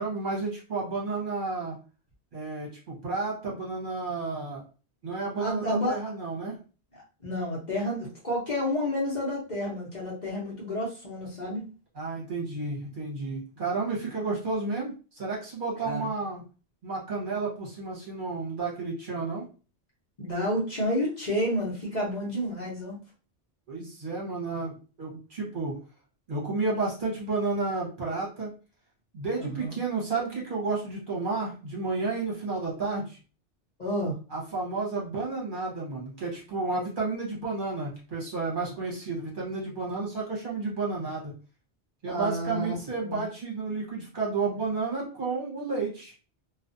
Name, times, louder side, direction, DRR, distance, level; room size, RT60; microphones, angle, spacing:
voice 1, 0.0-1.8 2.3-4.6 5.0-6.6 11.9-16.4 16.8-19.4 23.7-25.8 26.3-28.5 29.1-33.2 34.3-41.3 42.0-46.1, right 3 dB, 50° right, -4 dB, 1.0 m, -31 dB
voice 2, 5.4-5.9 6.9-11.6 15.8-16.1 20.2-23.0 29.4-29.8 33.8-34.1 42.1-42.7 43.0-43.2, equal, 40° left, -4 dB, 0.9 m, -30 dB
2.4 x 2.3 x 2.5 m, 0.35 s
omnidirectional pair, 1.2 m